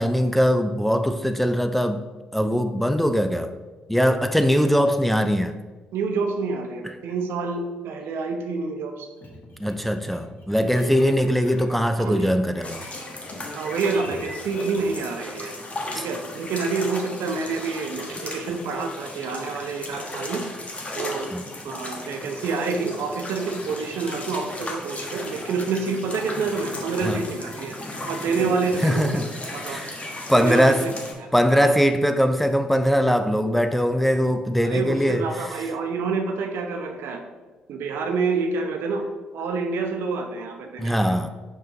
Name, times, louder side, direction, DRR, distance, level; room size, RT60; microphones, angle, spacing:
voice 1, 0.0-2.0 2.3-3.5 3.9-5.6 9.6-12.8 15.9-16.1 21.3-21.4 27.0-27.2 28.8-29.3 29.6-30.9 31.3-35.3 40.8-41.3, equal, 5° left, 8 dB, 0.4 m, -21 dB
voice 2, 5.9-9.1 10.7-10.9 12.0-12.3 13.6-15.5 15.9-20.5 20.9-21.3 21.6-27.8 28.1-29.2 29.5-29.8 30.3-30.9 31.2-31.7 34.6-37.2 37.7-39.1 39.3-41.1, right 4 dB, 65° right, 5 dB, 0.7 m, -28 dB
sound 1, 9.2-11.9 12.1-14.9, left 1 dB, 45° left, 1.5 m, -40 dB
sound 2, 12.6-31.1, left 2 dB, 30° left, 1.3 m, -36 dB
5.4 x 5.0 x 3.7 m, 1.3 s
hypercardioid pair, 45°, 4 cm